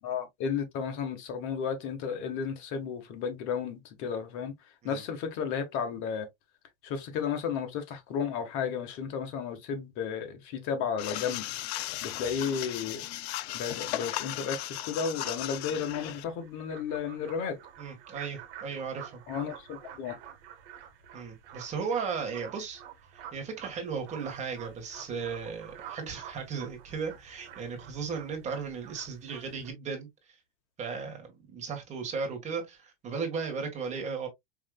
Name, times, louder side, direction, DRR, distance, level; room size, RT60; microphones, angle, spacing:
voice 1, 0.0-4.5 4.8-6.3 6.8-11.5 12.0-13.1 13.5-17.6 19.3-20.1, left 6 dB, 40° left, 1.3 m, -33 dB
sound 1, 11.0-16.2, left 14 dB, 65° left, 0.5 m, -36 dB
sound 2, 15.2-29.7, right 9 dB, 55° right, 1.5 m, -49 dB
voice 2, 17.8-19.2 21.1-22.8 23.1-30.1 30.8-34.3, right 5 dB, 20° right, 1.5 m, -36 dB
4.9 x 3.2 x 2.2 m
supercardioid pair, 145°, 35 cm